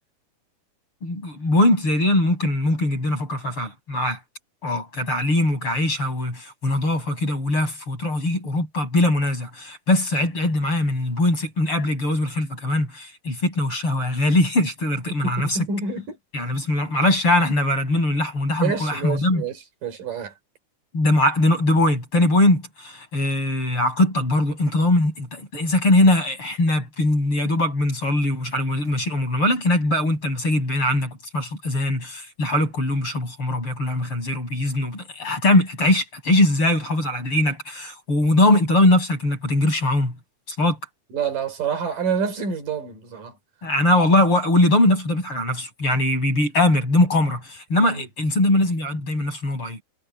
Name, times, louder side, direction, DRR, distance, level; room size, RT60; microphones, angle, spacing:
voice 1, 1.0-4.2 4.6-15.6 16.3-19.4 20.9-40.1 40.5-40.8 43.6-49.8, left 1 dB, 40° left, 8.2 m, -21 dB
voice 2, 15.2-16.2 18.6-20.3 41.1-43.4 47.9-48.1, right 6 dB, 80° right, 5.8 m, -27 dB
omnidirectional pair, 3.8 m